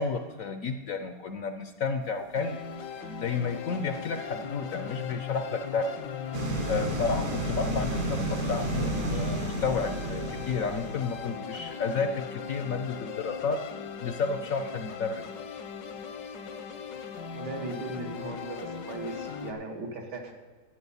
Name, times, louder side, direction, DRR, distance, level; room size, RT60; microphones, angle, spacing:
voice 1, 0.0-2.6 3.0-5.9 6.7-13.6 14.0-15.2, left 5 dB, 65° left, 8 dB, 0.9 m, -31 dB
sound 1, 2.3-19.5, left 7 dB, 85° left, 1.7 m, -39 dB
sound 2, 6.3-11.4, right 1 dB, 55° right, 1.5 m, -32 dB
voice 2, 17.3-20.4, right 2 dB, 70° right, 2 dB, 2.1 m, -38 dB
13.0 x 8.7 x 5.5 m, 1.4 s
omnidirectional pair, 1.9 m